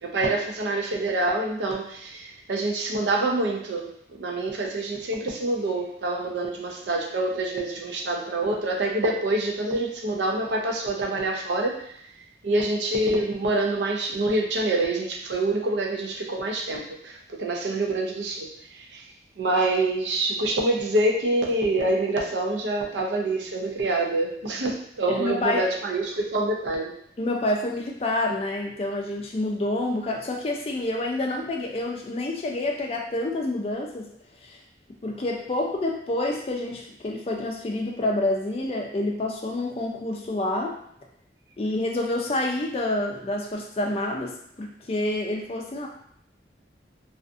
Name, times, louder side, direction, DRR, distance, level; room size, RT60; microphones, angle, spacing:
voice 1, 0.0-3.9 4.2-11.9 12.4-19.0 19.4-26.9, right 2 dB, 85° right, 0 dB, 0.5 m, -26 dB
voice 2, 25.1-25.6 27.2-34.1 34.4-34.5 35.0-40.8 41.6-45.9, left 2 dB, 35° left, 1 dB, 0.4 m, -28 dB
2.4 x 2.4 x 2.5 m, 0.69 s
head